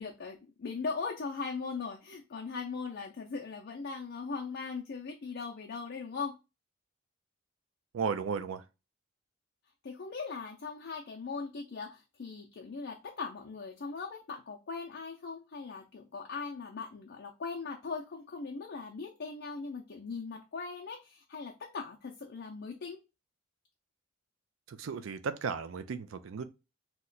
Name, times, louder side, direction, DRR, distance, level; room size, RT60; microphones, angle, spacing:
voice 1, 0.0-6.3 9.8-23.0, left 4 dB, 55° left, 0.5 m, -39 dB
voice 2, 7.9-8.6 24.7-26.4, right 5 dB, 90° right, 0.4 m, -35 dB
2.9 x 2.1 x 3.8 m
head